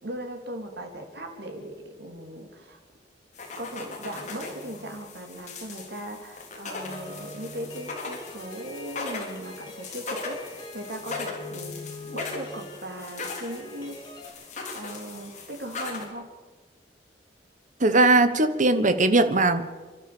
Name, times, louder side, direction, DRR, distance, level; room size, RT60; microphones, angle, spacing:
voice 1, 0.0-2.8 3.6-14.0 14.3-16.3, right 1 dB, 65° right, 3 dB, 3.6 m, -38 dB
sound 1, 3.4-16.1, left 3 dB, 45° left, 3.7 m, -39 dB
sound 2, 6.9-14.3, left 2 dB, 25° left, 3.6 m, -45 dB
voice 2, 17.8-19.7, right 2 dB, 45° right, 10 dB, 1.3 m, -20 dB
29.5 x 12.0 x 7.1 m, 1.4 s
head